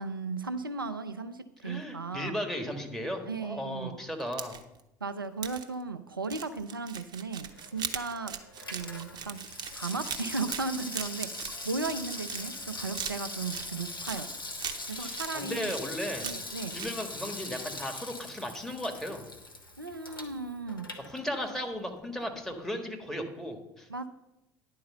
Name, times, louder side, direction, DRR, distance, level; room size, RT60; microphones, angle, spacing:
voice 1, 0.0-2.4 3.3-4.0 5.0-8.4 8.7-14.3 14.9-15.7 16.2-16.8 19.8-20.9 23.9-24.1, right 4 dB, 90° right, 10 dB, 0.5 m, -36 dB
voice 2, 1.6-4.6 14.9-16.3 16.7-19.3 21.1-23.9, equal, 5° left, 4 dB, 1.7 m, -36 dB
sound 1, 4.2-4.8 5.4-5.6 6.2-12.6 12.9-14.2 14.6-15.3 15.7-16.5 16.8-16.9, right 8 dB, 40° right, 0.9 m, -39 dB
Water tap faucet / Sink (filling or washing), 7.4-21.7 22.0-22.1, left 2 dB, 90° left, 0.9 m, -41 dB
10.5 x 4.7 x 6.7 m, 0.89 s
figure-of-eight pair, 65°, 11 cm